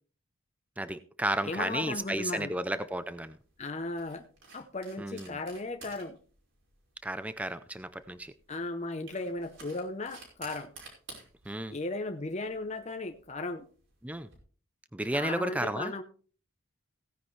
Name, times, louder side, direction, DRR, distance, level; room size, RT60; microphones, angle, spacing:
voice 1, 0.8-3.4 5.0-5.4 7.0-8.3 11.5-11.8 14.0-14.3 14.9-15.9, right 1 dB, 5° right, 12 dB, 0.5 m, -33 dB
voice 2, 1.4-2.5 3.6-4.2 4.5-6.2 8.5-10.7 11.7-13.7 15.1-16.0, left 2 dB, 30° left, 6 dB, 0.8 m, -36 dB
sound 1, 2.0-14.4, right 3 dB, 60° right, 5.0 m, -54 dB
17.0 x 10.0 x 3.2 m, 0.40 s
head